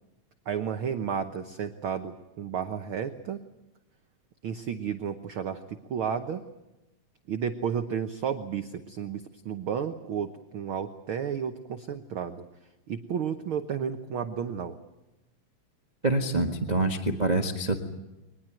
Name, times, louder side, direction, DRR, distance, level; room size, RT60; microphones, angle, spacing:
voice 1, 0.4-3.4 4.4-6.4 7.3-12.4 12.9-14.8, right 7 dB, 60° right, 8 dB, 1.5 m, -32 dB
voice 2, 16.0-17.8, right 2 dB, 25° right, 4 dB, 0.9 m, -26 dB
23.5 x 20.0 x 9.0 m, 0.99 s
omnidirectional pair, 3.4 m